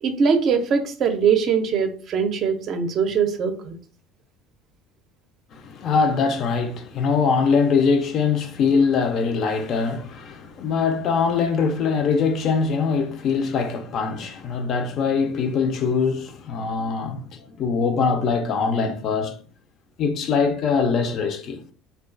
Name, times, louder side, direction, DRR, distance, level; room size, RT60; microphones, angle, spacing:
voice 1, 0.0-3.8, right 6 dB, 50° right, 0.4 m, -22 dB
voice 2, 5.5-19.4 20.0-21.6, left 5 dB, 50° left, 0.4 m, -22 dB
2.3 x 2.2 x 2.4 m
hypercardioid pair, 80°, 0 cm